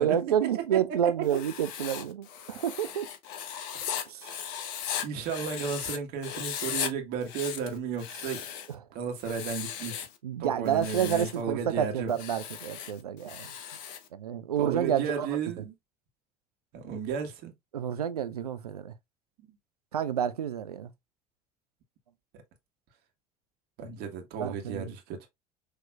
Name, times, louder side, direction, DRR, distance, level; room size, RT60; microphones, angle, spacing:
voice 1, 0.0-3.1 4.1-4.3 8.7-8.8 10.2-13.5 14.1-15.4 17.7-18.9 19.9-20.9 24.4-24.9, right 9 dB, 85° right, 0.5 m, -29 dB
voice 2, 0.5-1.1 5.0-8.4 8.9-10.0 10.4-12.2 14.6-15.7 16.7-17.5 23.8-25.3, right 6 dB, 55° right, 1.5 m, -34 dB
Writing, 1.2-6.0 6.2-6.9 7.2-8.7 9.2-10.2 10.7-11.4 12.1-14.1, left 9 dB, 60° left, 0.9 m, -37 dB
6.5 x 3.1 x 2.4 m
figure-of-eight pair, 65°, 19 cm